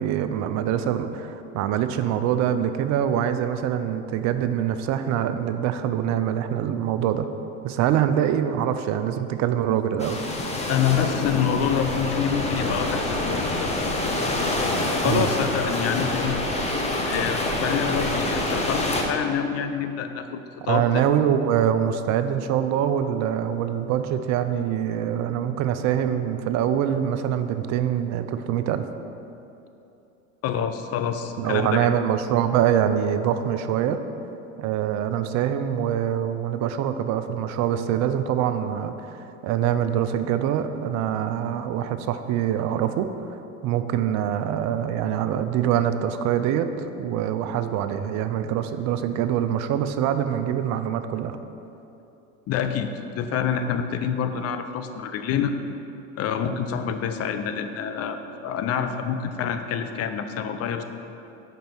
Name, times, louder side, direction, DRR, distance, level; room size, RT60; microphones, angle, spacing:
voice 1, 0.0-7.3 7.6-10.2 15.0-15.3 20.7-28.8 31.4-34.0 34.6-43.1 43.6-51.4, right 9 dB, 45° right, 9 dB, 0.5 m, -24 dB
sound 1, 10.0-19.0, left 2 dB, 15° left, 1.0 m, -26 dB
voice 2, 10.7-13.8 15.0-16.4 17.1-20.4 20.6-21.0 30.4-31.9 52.5-55.6 56.2-60.8, left 7 dB, 35° left, 8 dB, 0.6 m, -27 dB
5.3 x 5.2 x 6.0 m, 2.8 s
hypercardioid pair, 90°, 42 cm